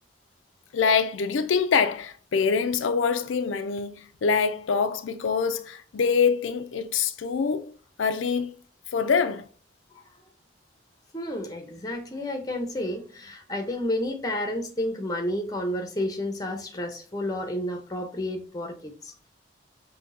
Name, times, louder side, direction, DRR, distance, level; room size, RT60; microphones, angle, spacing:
voice 1, 0.7-7.7 8.0-8.5 8.9-9.5, left 5 dB, 90° left, 0.4 m, -25 dB
voice 2, 11.1-19.3, left 1 dB, 20° left, 0.8 m, -31 dB
5.8 x 2.8 x 2.6 m
head